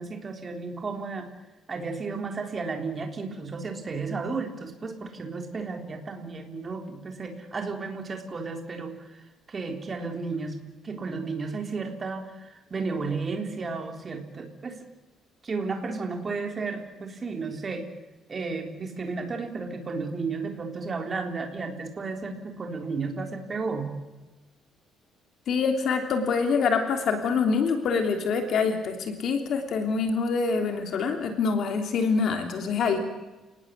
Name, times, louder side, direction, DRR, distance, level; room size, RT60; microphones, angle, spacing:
voice 1, 0.0-1.3 1.7-14.8 15.4-17.9 18.3-23.9 33.0-33.1, right 4 dB, 25° right, 4 dB, 3.7 m, -33 dB
voice 2, 25.5-33.0, left 5 dB, 50° left, 5 dB, 3.3 m, -25 dB
29.5 x 19.0 x 8.4 m, 1.1 s
cardioid pair, 160°, 0 cm